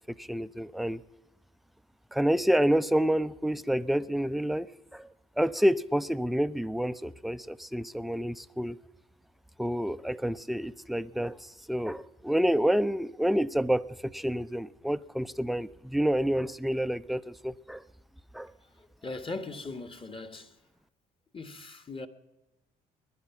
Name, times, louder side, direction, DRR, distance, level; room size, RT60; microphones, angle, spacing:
voice 1, 0.1-1.0 2.1-5.1 5.4-8.8 9.6-17.8 18.3-18.5, equal, ahead, 0.5 m, -28 dB
voice 2, 18.7-20.6 21.3-22.1, left 3 dB, 25° left, 1.4 m, -40 dB
21.0 x 11.0 x 5.9 m
hypercardioid pair, 60°, 20 cm